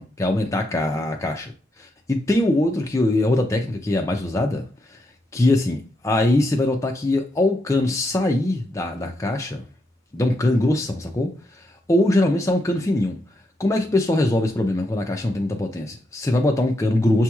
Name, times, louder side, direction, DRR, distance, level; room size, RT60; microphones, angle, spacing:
voice 1, 0.0-1.5 1.8-5.0 5.3-9.6 10.1-13.2 13.6-17.2, left 1 dB, 15° left, 0.3 m, -22 dB
6.0 x 2.9 x 2.3 m
head